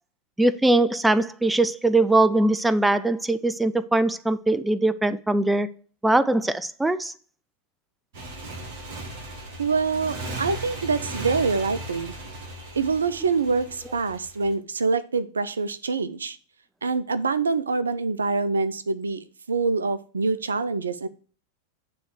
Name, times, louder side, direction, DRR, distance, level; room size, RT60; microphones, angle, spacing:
voice 1, 0.4-5.7 6.0-7.1, right 2 dB, 5° right, 0.4 m, -21 dB
Motorcycle, 8.1-14.5, right 1 dB, 50° right, 2.0 m, -37 dB
voice 2, 9.6-12.1 12.7-16.4 16.8-21.1, right 4 dB, 70° right, 0.5 m, -25 dB
9.3 x 3.2 x 6.2 m
figure-of-eight pair, 90°, 0 cm